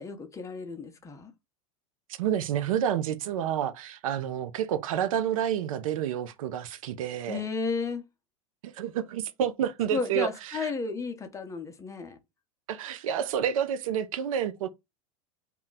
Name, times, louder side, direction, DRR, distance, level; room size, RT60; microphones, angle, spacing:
voice 1, 0.0-1.3 7.3-8.0 9.9-12.2, left 4 dB, 20° left, 0.6 m, -33 dB
voice 2, 2.2-7.4 8.7-10.7 12.7-14.7, right 9 dB, 80° right, 0.4 m, -29 dB
2.3 x 2.1 x 3.9 m
hypercardioid pair, 110°, 17 cm